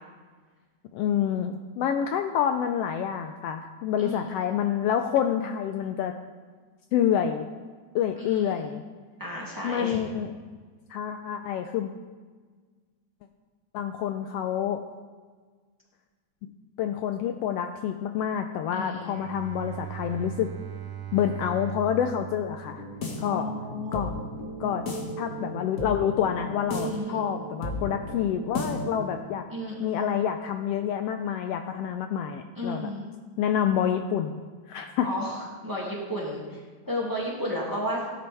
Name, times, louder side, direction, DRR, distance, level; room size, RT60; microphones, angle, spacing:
voice 1, 0.9-6.1 6.9-7.5 7.9-8.8 9.6-10.3 10.9-11.9 13.7-14.8 16.8-20.5 21.1-22.8 23.2-23.5 23.9-24.1 24.6-24.8 25.2-29.4 29.8-32.9 33.4-34.4 34.7-35.1, left 9 dB, 90° left, 7 dB, 1.4 m, -27 dB
voice 2, 4.0-4.3 8.2-8.5 9.2-10.0 18.7-19.2 23.3-24.0 26.8-27.2 29.5-30.2 32.6-33.1 35.0-36.6 36.9-38.0, equal, 10° right, -4 dB, 1.9 m, -33 dB
Bowed string instrument, 19.1-24.3, right 12 dB, 80° right, 2.1 m, -40 dB
sound 1, 22.7-29.2, left 1 dB, 35° left, 1.4 m, -35 dB
17.0 x 10.5 x 3.4 m, 1.5 s
omnidirectional pair, 3.3 m